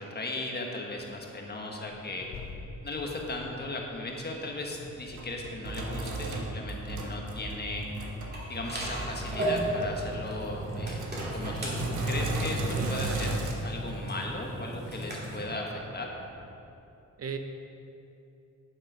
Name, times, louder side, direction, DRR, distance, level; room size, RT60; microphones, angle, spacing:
voice 1, 0.0-2.3 2.8-7.8 8.5-11.0 11.3-13.3 13.6-16.1, left 2 dB, 35° left, 0 dB, 1.4 m, -37 dB
Accelerating revving vroom, 0.9-16.6, left 3 dB, 65° left, 1.0 m, -51 dB
Sink (filling or washing), 4.7-13.5, right 2 dB, 85° right, 1.3 m, -35 dB
sound 1, 8.3-15.4, right 1 dB, 35° right, 2.7 m, -35 dB
voice 2, 9.2-9.6 12.7-13.4 17.2-17.4, right 6 dB, 55° right, 6 dB, 0.7 m, -39 dB
9.9 x 7.3 x 5.6 m, 2.9 s
wide cardioid pair, 135°, 29 cm